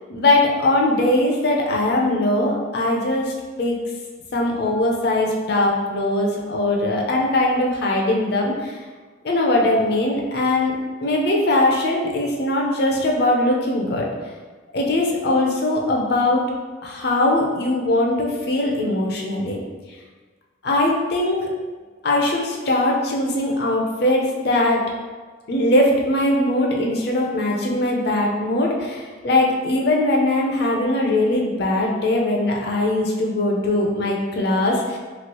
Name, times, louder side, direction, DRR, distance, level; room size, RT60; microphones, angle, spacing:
voice 1, 0.1-3.8 4.3-8.8 9.2-14.1 14.7-16.5 16.8-19.6 20.6-21.4 22.0-24.8 25.5-35.0, left 1 dB, 55° left, -1 dB, 0.5 m, -20 dB
3.0 x 2.4 x 2.9 m, 1.4 s
head